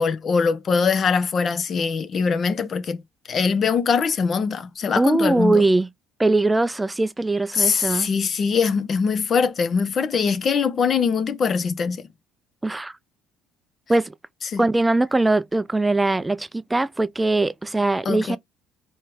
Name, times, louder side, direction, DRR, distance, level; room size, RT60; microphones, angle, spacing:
voice 1, 0.0-3.0 3.3-5.6 7.5-12.1 14.5-14.6 18.0-18.4, left 5 dB, 45° left, 0.8 m, -22 dB
voice 2, 5.0-5.9 6.2-8.1 12.6-13.0 13.9-14.1 14.6-18.4, right 2 dB, 15° right, 0.4 m, -21 dB
4.3 x 3.5 x 3.4 m
hypercardioid pair, 60°, 0 cm